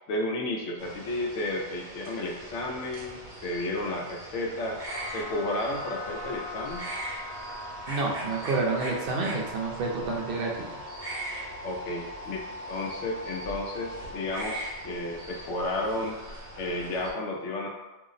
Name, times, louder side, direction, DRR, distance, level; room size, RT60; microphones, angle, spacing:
voice 1, 0.1-4.8 5.1-6.8 11.6-12.4 12.7-16.2 16.6-17.7, left 1 dB, 85° left, 0 dB, 0.9 m, -32 dB
sound 1, 0.8-17.1, right 1 dB, 45° right, 1.0 m, -41 dB
sound 2, 4.9-16.9, left 1 dB, 70° left, 1.3 m, -41 dB
voice 2, 7.9-10.5, right 3 dB, 60° right, -1 dB, 0.7 m, -29 dB
2.7 x 2.0 x 3.8 m, 1.1 s
omnidirectional pair, 1.2 m